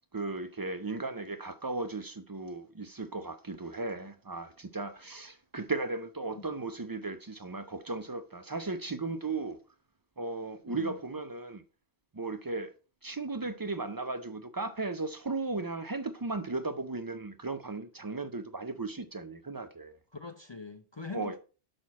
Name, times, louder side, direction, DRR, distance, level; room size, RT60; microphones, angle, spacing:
voice 1, 0.1-9.6 10.2-11.6 12.1-12.7 13.0-20.0 21.1-21.3, right 3 dB, 35° right, 0.3 m, -36 dB
voice 2, 10.7-11.0 20.1-21.4, left 4 dB, 35° left, 0.5 m, -43 dB
6.5 x 5.9 x 4.1 m
omnidirectional pair, 1.1 m